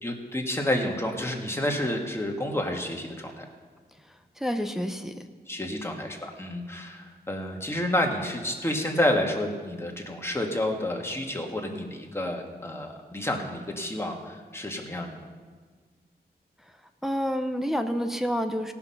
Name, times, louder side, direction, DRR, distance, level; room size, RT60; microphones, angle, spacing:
voice 1, 0.0-3.5 5.5-15.2, left 1 dB, 15° left, 1 dB, 1.7 m, -29 dB
voice 2, 4.4-5.2 17.0-18.7, equal, ahead, 6 dB, 0.7 m, -28 dB
17.5 x 6.0 x 5.7 m, 1.5 s
wide cardioid pair, 80°, 17 cm